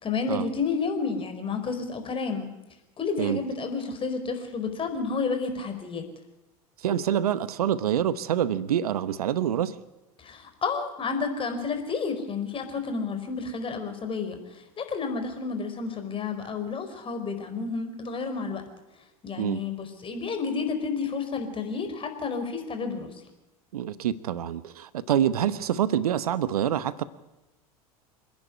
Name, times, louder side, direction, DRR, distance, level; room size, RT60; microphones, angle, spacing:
voice 1, 0.0-2.5 3.0-6.0 10.2-18.6 19.2-23.1, left 5 dB, 30° left, 6 dB, 4.7 m, -31 dB
voice 2, 6.8-9.8 19.4-19.6 23.7-27.0, right 10 dB, 75° right, 16 dB, 0.9 m, -26 dB
27.0 x 10.5 x 9.9 m, 0.99 s
hypercardioid pair, 80°, 19 cm